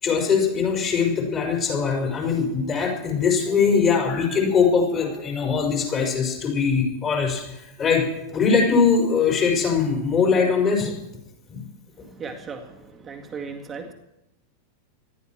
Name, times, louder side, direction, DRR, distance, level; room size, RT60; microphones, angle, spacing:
voice 1, 0.0-7.4 7.8-8.1 8.3-10.9 11.5-11.6, left 5 dB, 30° left, 0 dB, 5.5 m, -21 dB
voice 2, 12.2-13.9, right 5 dB, 20° right, 3 dB, 2.0 m, -36 dB
19.5 x 13.5 x 4.7 m, 0.89 s
figure-of-eight pair, 90°, 0 cm